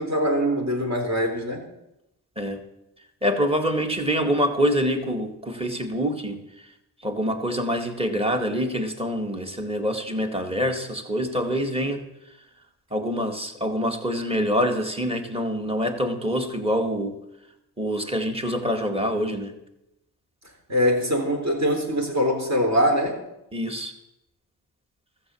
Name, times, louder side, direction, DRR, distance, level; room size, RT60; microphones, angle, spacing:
voice 1, 0.0-1.6 20.7-23.2, equal, 40° right, 1 dB, 3.8 m, -23 dB
voice 2, 3.2-6.4 7.0-12.0 12.9-17.2 17.8-19.6 23.5-23.9, equal, 15° right, 6 dB, 2.1 m, -25 dB
13.5 x 7.3 x 7.1 m, 0.88 s
cardioid pair, 60°, 40 cm